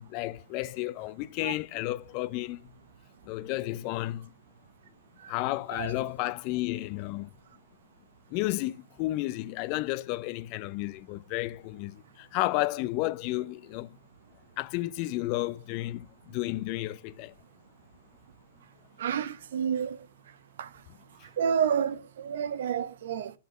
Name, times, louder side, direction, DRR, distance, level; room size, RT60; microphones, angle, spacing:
voice 1, 0.0-2.6 3.3-4.3 5.3-7.3 8.3-13.9 14.6-16.1 16.3-17.3, left 18 dB, 40° left, 0.6 m, -32 dB
voice 2, 19.0-20.0 20.6-20.7 21.4-23.3, right 8 dB, 60° right, 0.9 m, -29 dB
11.0 x 5.9 x 7.1 m
figure-of-eight pair, 110°, 0 cm